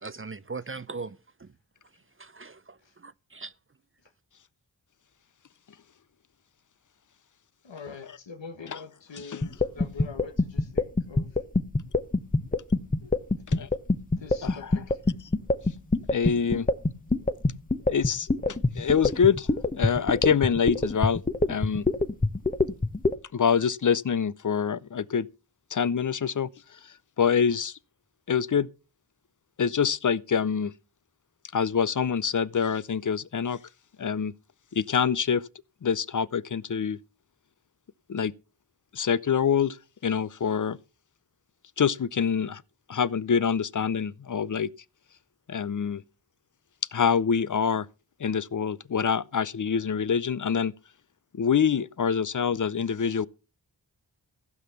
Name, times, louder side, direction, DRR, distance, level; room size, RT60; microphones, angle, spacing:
voice 1, 0.0-1.5 2.2-2.8 3.4-3.5, right 4 dB, 30° right, 0.6 m, -38 dB
voice 2, 7.6-11.3 13.0-13.1 14.2-15.0, left 4 dB, 80° left, 1.6 m, -44 dB
sound 1, 9.4-23.2, left 2 dB, 20° left, 0.9 m, -24 dB
voice 3, 16.1-16.6 17.9-18.3 18.8-19.5 19.8-21.2 21.5-21.8 23.3-25.3 25.7-26.5 27.2-27.7 28.3-28.7 29.6-30.7 31.5-33.6 34.0-34.3 34.8-35.4 35.8-37.0 38.1-38.3 39.0-39.7 40.0-40.8 41.8-42.6 42.9-44.7 45.5-46.0 46.9-47.8 48.2-50.7 51.4-53.3, left 7 dB, 45° left, 0.6 m, -25 dB
15.0 x 6.0 x 6.9 m
cardioid pair, 45°, 44 cm